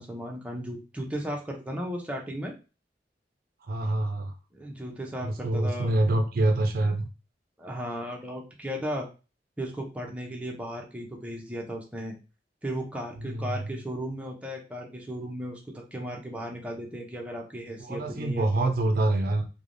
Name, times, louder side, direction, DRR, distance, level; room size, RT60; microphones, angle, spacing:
voice 1, 0.0-2.5 4.5-5.9 7.6-9.1 9.6-12.2 12.6-18.7, equal, 10° right, 0 dB, 0.5 m, -35 dB
voice 2, 3.6-4.3 5.2-7.1 13.2-13.7 17.8-19.5, right 2 dB, 55° right, 4 dB, 0.4 m, -26 dB
3.2 x 2.1 x 2.5 m, 0.31 s
head